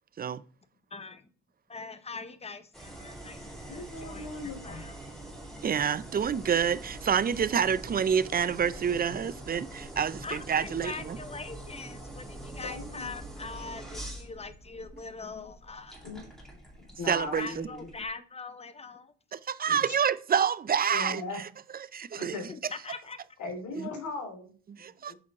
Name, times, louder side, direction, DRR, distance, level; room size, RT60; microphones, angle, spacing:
voice 1, 0.9-1.2 1.7-4.9 10.2-16.2 16.9-17.0 17.3-19.1 22.5-23.2, left 4 dB, 20° left, 0.9 m, -42 dB
sound 1, 2.7-18.1, right 1 dB, ahead, 2.2 m, -44 dB
voice 2, 3.7-4.8 12.6-13.1 16.0-16.2 17.0-17.9 19.7-20.0 20.9-21.4 22.2-22.4 23.4-25.2, left 3 dB, 75° left, 3.0 m, -39 dB
voice 3, 5.6-11.2 17.1-17.7 19.3-21.2 21.9-22.4 23.8-23.9 24.8-25.1, right 7 dB, 30° right, 0.5 m, -28 dB
8.3 x 5.0 x 4.1 m
cardioid pair, 90°, 30 cm